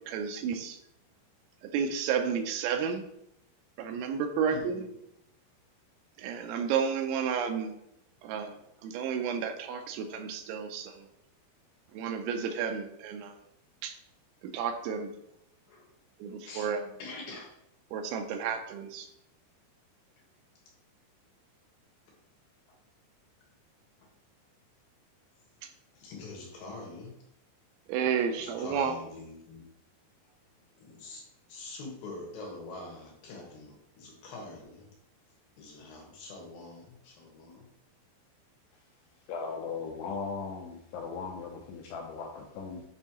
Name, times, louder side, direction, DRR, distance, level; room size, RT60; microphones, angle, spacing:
voice 1, 0.1-0.8 1.7-3.0 3.8-4.8 6.2-7.7 8.2-11.0 11.9-13.3 13.8-13.9 14.4-15.1 16.2-16.8 17.9-19.1 27.9-28.9, right 7 dB, 85° right, 5 dB, 3.1 m, -31 dB
voice 2, 4.5-4.9 15.7-15.9 16.5-16.7 17.0-17.5 25.9-27.1 28.4-29.6 30.8-31.2 31.5-34.9 35.6-37.7, left 2 dB, 65° left, -1 dB, 2.8 m, -44 dB
voice 3, 39.3-42.8, left 5 dB, 80° left, 2 dB, 2.5 m, -38 dB
8.1 x 5.3 x 2.9 m, 0.78 s
omnidirectional pair, 5.3 m